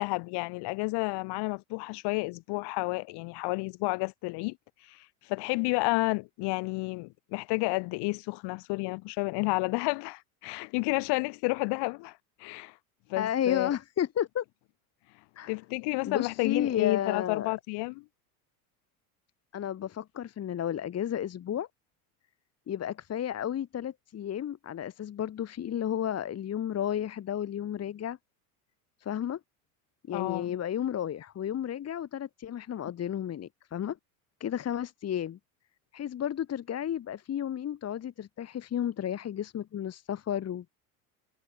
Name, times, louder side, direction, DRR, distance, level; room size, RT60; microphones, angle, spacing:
voice 1, 0.0-4.6 4.8-12.7 13.1-13.7 15.5-18.0 30.1-30.6, left 26 dB, 65° left, 6.3 m, -31 dB
voice 2, 13.2-14.4 15.4-15.5 16.0-17.5 19.5-21.7 22.7-28.2 29.0-29.4 30.1-34.0 34.4-35.4 35.9-40.7, left 10 dB, 35° left, 2.3 m, -32 dB
supercardioid pair, 105°, 44 cm